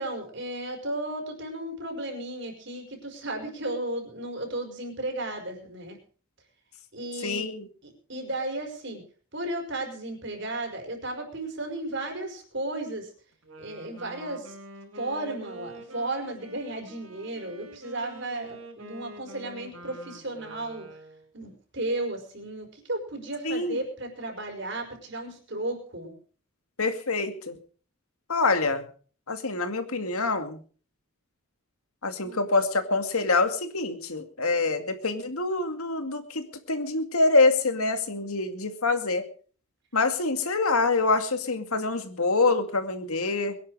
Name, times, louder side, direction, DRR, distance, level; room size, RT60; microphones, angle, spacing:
voice 1, 0.0-6.0 6.9-7.4 7.8-9.0 9.3-13.1 13.6-14.5 14.9-20.9 21.3-26.2 32.2-32.4, right 2 dB, 55° right, 4 dB, 5.3 m, -34 dB
voice 2, 7.2-7.7 23.4-23.8 26.8-27.6 28.3-28.9 29.3-30.6 32.0-39.2 39.9-43.5, left 3 dB, 85° left, 8 dB, 2.3 m, -25 dB
Wind instrument woodwind instrument, 13.3-21.3, right 1 dB, 75° right, 5.6 m, -46 dB
22.5 x 11.0 x 4.9 m, 0.43 s
head